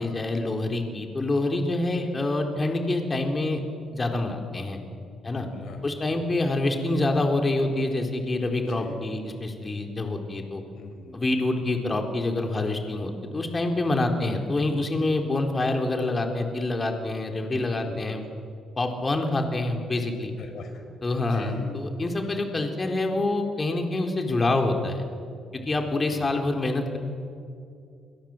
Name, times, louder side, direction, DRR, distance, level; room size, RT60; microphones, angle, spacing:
voice 1, 0.0-3.6 3.9-4.8 5.2-5.5 5.8-10.6 11.1-18.2 18.8-20.3 21.0-25.0 25.7-27.0, left 2 dB, 25° left, 3 dB, 4.1 m, -26 dB
voice 2, 5.2-5.8 8.7-8.9 10.7-11.2 17.5-18.2 20.4-20.8 21.3-21.7 25.8-26.3, left 3 dB, 65° left, 5 dB, 5.7 m, -42 dB
29.5 x 22.5 x 8.0 m, 2.4 s
cardioid pair, 90°, 0 cm